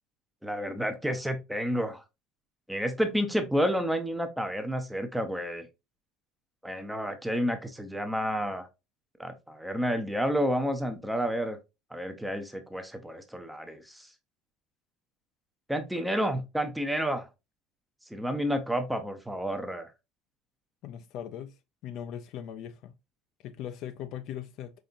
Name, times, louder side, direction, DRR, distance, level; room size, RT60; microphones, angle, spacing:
voice 1, 0.4-2.0 2.7-5.7 6.6-8.7 9.2-11.6 11.9-14.1 15.7-17.3 18.1-19.9, equal, ahead, 0.5 m, -30 dB
voice 2, 20.8-21.5 21.8-22.9 23.4-24.7, left 10 dB, 45° left, 0.3 m, -39 dB
5.2 x 3.4 x 2.4 m
cardioid pair, 175°, 0 cm